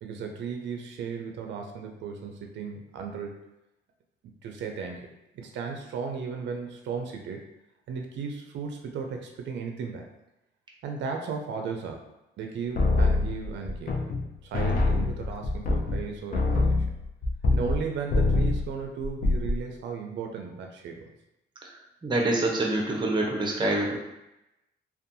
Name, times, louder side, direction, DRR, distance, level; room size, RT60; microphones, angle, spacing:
voice 1, 0.0-3.4 4.4-7.5 7.9-10.1 10.8-12.1 12.4-14.0 14.4-16.9 17.5-21.1, right 5 dB, 65° right, 3 dB, 0.4 m, -35 dB
sound 1, 12.7-14.3 14.5-17.8 18.1-18.7 19.0-19.6, left 2 dB, 45° left, 0.5 m, -24 dB
voice 2, 22.0-24.0, right 2 dB, 25° right, -1 dB, 0.7 m, -26 dB
2.6 x 2.2 x 2.6 m, 0.90 s
cardioid pair, 90°, 20 cm